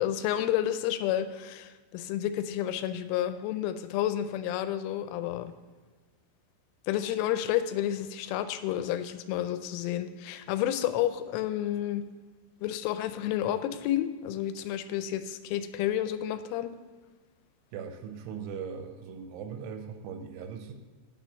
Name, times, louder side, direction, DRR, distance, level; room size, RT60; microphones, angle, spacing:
voice 1, 0.0-5.5 6.9-12.0 12.6-16.7, left 11 dB, 85° left, 10 dB, 3.1 m, -30 dB
voice 2, 17.7-20.7, right 6 dB, 85° right, 6 dB, 3.0 m, -39 dB
9.3 x 4.4 x 7.0 m, 1.4 s
omnidirectional pair, 5.6 m